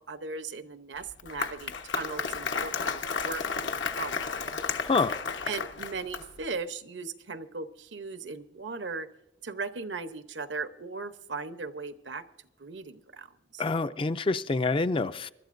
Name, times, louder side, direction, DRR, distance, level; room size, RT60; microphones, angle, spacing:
voice 1, 0.0-4.2 5.5-9.1 9.4-12.2 12.6-13.6, right 4 dB, 75° right, 0.9 m, -38 dB
Applause, 1.0-6.5, left 5 dB, 80° left, 1.1 m, -33 dB
voice 2, 4.8-5.2 13.6-15.3, left 3 dB, 30° left, 0.4 m, -27 dB
24.5 x 12.5 x 2.6 m
head